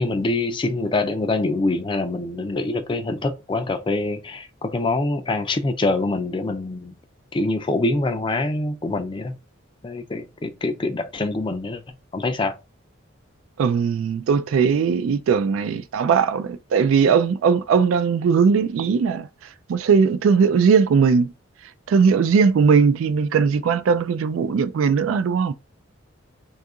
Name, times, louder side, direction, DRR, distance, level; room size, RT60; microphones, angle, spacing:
voice 1, 0.0-6.9 7.3-9.4 9.8-11.8 12.1-12.5, left 2 dB, 25° left, 0.4 m, -25 dB
voice 2, 13.6-19.3 19.7-21.3 21.9-25.5, right 6 dB, 80° right, 0.3 m, -19 dB
2.7 x 2.4 x 3.6 m
head